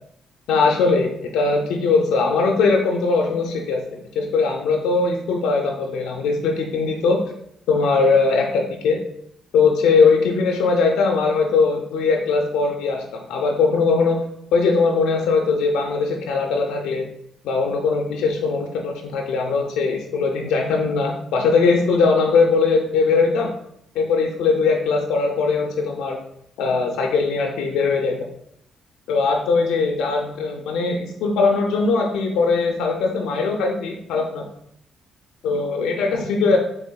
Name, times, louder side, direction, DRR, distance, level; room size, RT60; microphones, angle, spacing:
voice 1, 0.5-3.9 4.2-7.2 7.7-9.0 9.5-14.2 14.5-17.0 17.4-23.5 24.0-26.2 26.6-28.2 29.1-34.5 35.4-36.6, left 4 dB, 90° left, 2 dB, 0.3 m, -20 dB
3.5 x 3.4 x 2.2 m, 0.74 s
cardioid pair, 90°, 0 cm